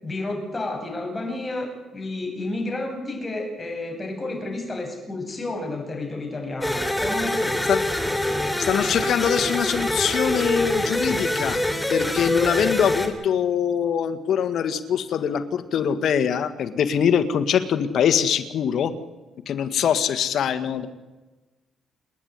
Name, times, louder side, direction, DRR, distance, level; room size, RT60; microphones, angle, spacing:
voice 1, 0.0-7.7, left 2 dB, 25° left, 2 dB, 7.5 m, -31 dB
sound 1, 6.6-13.1, left 1 dB, 5° left, 3.2 m, -25 dB
voice 2, 8.6-11.6 11.9-18.9 19.4-20.9, left 8 dB, 70° left, 11 dB, 1.7 m, -23 dB
29.0 x 10.5 x 9.6 m, 1.2 s
cardioid pair, 90°, 0 cm